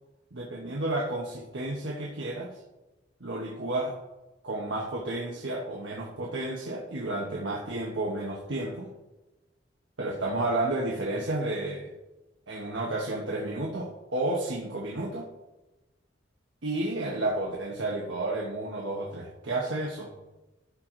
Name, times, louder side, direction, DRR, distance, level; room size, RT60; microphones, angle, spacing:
voice 1, 0.3-2.6 3.2-3.9 4.4-8.9 10.0-11.9 12.5-15.3 16.6-20.1, right 2 dB, 90° right, -1 dB, 1.3 m, -31 dB
13.0 x 4.7 x 3.9 m, 1.1 s
head